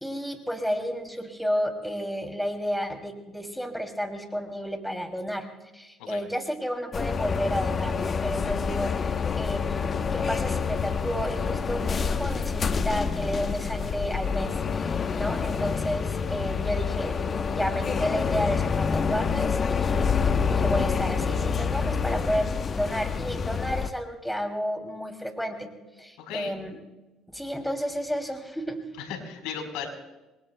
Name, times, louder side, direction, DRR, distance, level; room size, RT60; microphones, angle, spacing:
voice 1, 0.0-5.5 5.7-25.7 26.0-26.8 27.3-28.8, equal, ahead, 4 dB, 2.8 m, -31 dB
sound 1, 6.9-23.9, left 6 dB, 40° left, 0.9 m, -27 dB
voice 2, 26.2-26.5 29.0-29.9, left 7 dB, 80° left, 3 dB, 4.1 m, -36 dB
28.0 x 22.0 x 2.2 m, 1.1 s
supercardioid pair, 90°, 0 cm